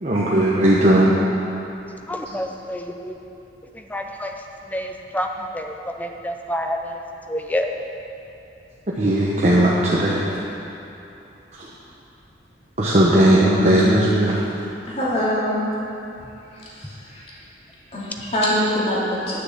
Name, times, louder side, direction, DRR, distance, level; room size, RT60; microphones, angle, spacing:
voice 1, 0.0-1.1 9.0-10.2 11.6-11.7 12.8-14.4, right 1 dB, 40° right, -5 dB, 0.9 m, -17 dB
voice 2, 2.1-3.2 3.7-4.4 4.7-7.0 7.3-7.7, equal, 10° left, 3 dB, 0.6 m, -28 dB
voice 3, 14.9-15.6 16.5-17.2 17.9-19.4, equal, 35° left, -8 dB, 2.7 m, -24 dB
10.0 x 6.6 x 7.3 m, 2.8 s
head